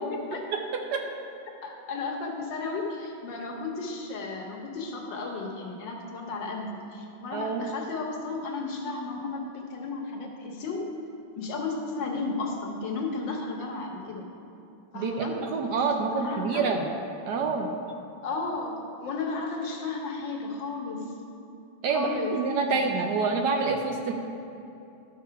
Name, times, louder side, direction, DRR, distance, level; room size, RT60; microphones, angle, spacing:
voice 1, 0.1-0.4 1.6-10.9 11.4-14.3 14.9-15.4 16.1-16.7 18.2-21.0 21.9-22.4 23.1-23.3, left 3 dB, 65° left, 0 dB, 1.6 m, -34 dB
voice 2, 7.3-7.7 14.9-16.9 17.3-17.7 21.8-24.1, right 4 dB, 70° right, 3 dB, 1.0 m, -27 dB
12.0 x 4.3 x 5.7 m, 2.8 s
omnidirectional pair, 2.2 m